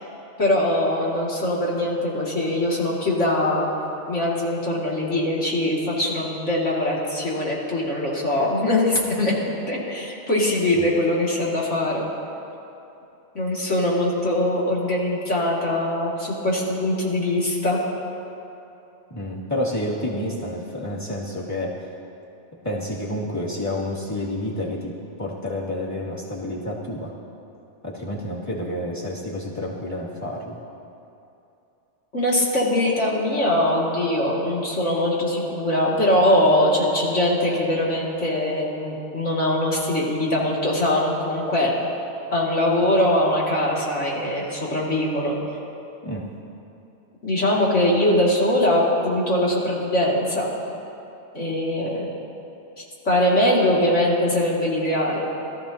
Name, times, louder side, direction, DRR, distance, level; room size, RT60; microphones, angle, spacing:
voice 1, 0.4-3.7 4.1-9.3 9.7-12.0 13.3-17.8 32.1-41.7 42.3-45.3 47.2-50.5 51.3-52.1 52.8-55.2, left 1 dB, 85° left, -5 dB, 2.8 m, -22 dB
voice 2, 19.1-21.7 22.6-27.1 27.8-30.6 46.0-46.3, left 1 dB, 15° left, -6 dB, 2.4 m, -29 dB
22.0 x 13.5 x 2.9 m, 2.9 s
omnidirectional pair, 1.2 m